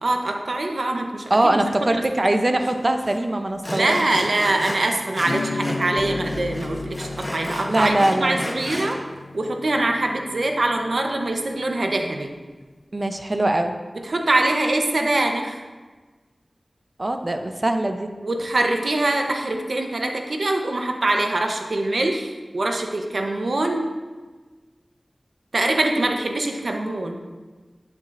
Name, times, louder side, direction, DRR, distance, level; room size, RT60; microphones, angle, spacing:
voice 1, 0.0-2.0 3.7-9.0 9.3-12.3 14.0-15.6 18.2-23.8 25.5-27.2, right 2 dB, 75° right, 3 dB, 0.9 m, -23 dB
voice 2, 1.3-4.0 7.6-8.5 12.9-13.7 17.0-18.1, right 1 dB, 45° right, 6 dB, 0.8 m, -22 dB
Sawing, 2.6-2.7 3.0-3.2 3.6-5.9 6.1-9.0, left 1 dB, 25° left, 1.2 m, -33 dB
sound 1, 3.5-3.6 6.0-8.6, left 1 dB, 55° left, 1.1 m, -40 dB
Acoustic guitar / Strum, 5.2-11.5, left 3 dB, 75° left, 0.8 m, -33 dB
11.5 x 7.4 x 2.6 m, 1.3 s
wide cardioid pair, 40°, 0 cm